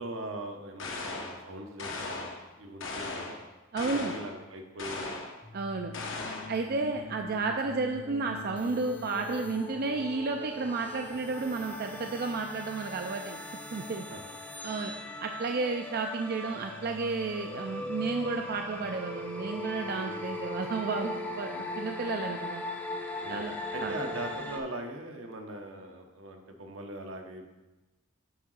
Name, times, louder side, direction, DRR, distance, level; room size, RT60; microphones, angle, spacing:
voice 1, 0.0-3.4 3.8-5.2 6.6-6.9 14.1-14.4 20.0-20.2 23.2-23.4 23.7-27.5, right 1 dB, 80° right, 3 dB, 1.0 m, -41 dB
sound 1, 0.8-1.4 1.8-2.4 2.8-3.4 3.8-4.3 4.8-5.4 5.9-6.6, left 3 dB, 70° left, 1.0 m, -37 dB
voice 2, 3.7-4.1 5.5-5.9 6.5-13.4 13.7-14.0 14.6-14.9 15.2-22.6 23.3-24.0, right 3 dB, 50° right, 3 dB, 0.4 m, -32 dB
sound 2, 5.4-24.6, left 2 dB, 10° left, 0.6 m, -40 dB
7.9 x 3.8 x 6.4 m, 1.1 s
head